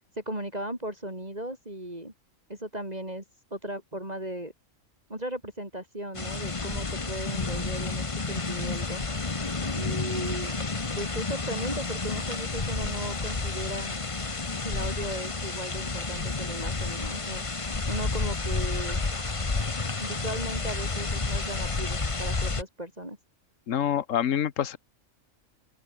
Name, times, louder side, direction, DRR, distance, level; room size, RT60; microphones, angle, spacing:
voice 1, 0.0-2.1 2.5-3.2 3.5-4.5 5.1-9.0 9.7-10.5 11.0-13.9 14.6-19.0 20.0-23.2, right 1 dB, 30° right, 6.4 m, -36 dB
sound 1, 6.1-22.6, left 3 dB, 25° left, 1.3 m, -30 dB
voice 2, 23.7-24.8, left 9 dB, 75° left, 1.4 m, -26 dB
open air
omnidirectional pair, 1.4 m